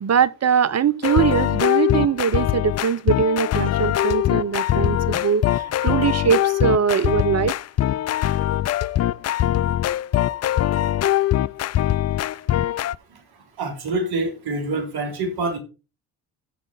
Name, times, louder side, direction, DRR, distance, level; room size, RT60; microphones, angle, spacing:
voice 1, 0.0-7.5, right 7 dB, 40° right, 0.8 m, -21 dB
sound 1, 1.0-13.0, left 12 dB, 40° left, 0.4 m, -22 dB
voice 2, 13.6-15.6, right 2 dB, 60° right, 3.7 m, -26 dB
15.0 x 5.1 x 4.1 m
hypercardioid pair, 50°, 42 cm